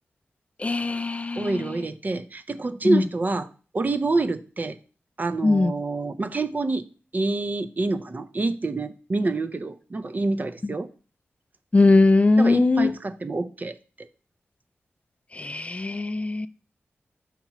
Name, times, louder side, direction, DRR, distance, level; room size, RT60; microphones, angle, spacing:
voice 1, 0.6-1.8 2.8-3.0 5.4-5.7 10.6-10.7 11.7-12.9 15.3-16.5, left 3 dB, 30° left, 0.3 m, -20 dB
voice 2, 1.4-3.5 3.7-4.8 5.2-6.9 7.1-10.9 12.4-14.1, right 3 dB, 40° right, 0.4 m, -27 dB
5.8 x 2.9 x 5.5 m
cardioid pair, 65°, 4 cm